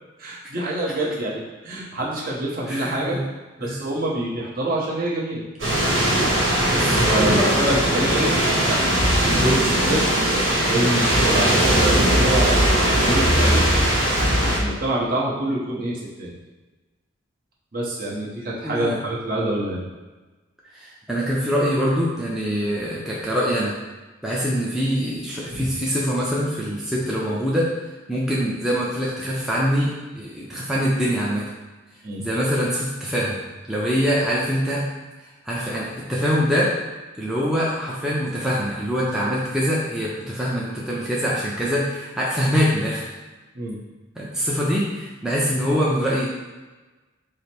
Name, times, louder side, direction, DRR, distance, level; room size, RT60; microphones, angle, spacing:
voice 1, 0.2-3.2 3.6-5.4 6.6-8.3 8.6-10.0 10.7-12.6 13.0-13.7 14.2-16.3 17.7-19.8 25.5-25.7 32.0-32.2 43.5-43.8, right 1 dB, 45° right, -5 dB, 0.9 m, -26 dB
voice 2, 2.7-3.2 3.6-3.8 7.2-7.6 18.6-19.0 20.7-23.7 24.2-27.7 28.1-31.4 32.2-33.4 33.7-34.8 35.4-36.7 37.2-43.1 44.2-46.3, equal, 5° right, -7 dB, 0.5 m, -24 dB
sound 1, 5.6-14.6, right 1 dB, 70° right, 1.3 m, -19 dB
4.9 x 2.0 x 4.3 m, 1.2 s
head